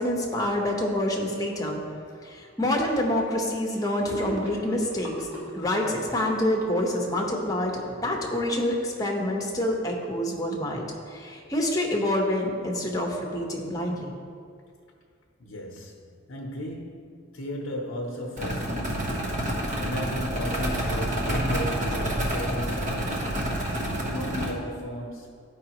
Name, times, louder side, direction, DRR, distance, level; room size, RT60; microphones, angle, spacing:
voice 1, 0.0-1.8 2.2-5.3 5.5-14.1, left 1 dB, 15° left, 0.9 m, -27 dB
Gurgling / Sink (filling or washing), 4.0-8.5, right 1 dB, 10° right, 1.8 m, -40 dB
voice 2, 15.4-23.4 24.0-25.3, left 1 dB, 75° left, 0.7 m, -35 dB
sound 1, 18.4-24.5, right 1 dB, 35° right, 1.1 m, -28 dB
12.5 x 4.9 x 2.9 m
head